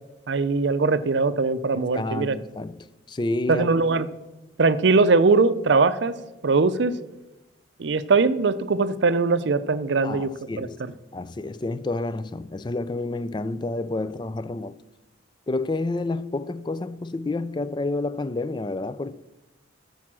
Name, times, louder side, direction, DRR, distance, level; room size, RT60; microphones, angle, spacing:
voice 1, 0.3-2.4 3.5-4.1 4.6-6.1 6.4-7.0 7.8-10.3 10.6-10.7, right 4 dB, 65° right, 0.5 m, -21 dB
voice 2, 1.7-3.7 10.0-10.8 11.1-14.8 15.5-19.2, left 2 dB, 25° left, 0.3 m, -29 dB
10.5 x 6.9 x 6.1 m
head